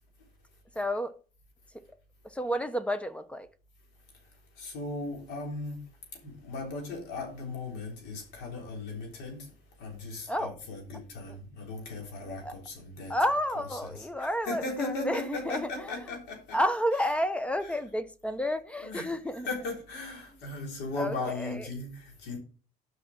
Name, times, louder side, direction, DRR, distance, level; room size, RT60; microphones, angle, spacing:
voice 1, 0.8-1.1 2.3-3.5 10.3-10.6 11.3-11.4 12.4-12.5 13.1-15.9 16.5-19.5 21.0-21.6, equal, 5° left, 0.8 m, -30 dB
voice 2, 4.6-5.8 6.1-9.5 9.8-13.2 13.6-16.6 18.8-22.4, left 3 dB, 90° left, 3.5 m, -37 dB
7.8 x 5.7 x 6.2 m
cardioid pair, 110°, 17 cm